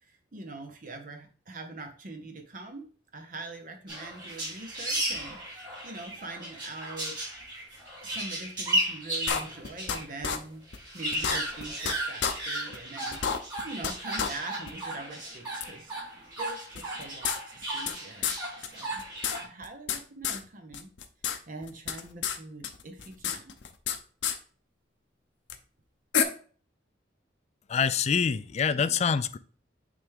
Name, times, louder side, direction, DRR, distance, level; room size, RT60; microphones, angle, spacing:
voice 1, 0.0-2.9 3.1-7.2 8.0-10.7 10.9-19.0 19.4-20.9 21.5-23.5, right 2 dB, 45° right, 5 dB, 0.8 m, -43 dB
sound 1, 3.9-10.1 10.4-10.5 10.7-19.4, right 1 dB, 20° right, 3.4 m, -35 dB
sound 2, 9.3-10.0 10.2-10.4 10.7-10.8 11.1-11.9 12.2-12.3 12.7-12.8 13.1-13.9 14.2-14.3 14.7-14.8 15.6-15.7 16.7-17.9 18.2-18.4 18.6-18.7 19.0-20.0 20.2-20.4 20.7-21.4 21.6-22.4 22.6-24.0 24.2-24.4 25.5-25.6 26.1-26.2, left 7 dB, 75° left, 0.7 m, -29 dB
voice 2, 27.7-29.4, left 6 dB, 35° left, 14 dB, 0.3 m, -26 dB
8.4 x 3.5 x 3.5 m, 0.42 s
head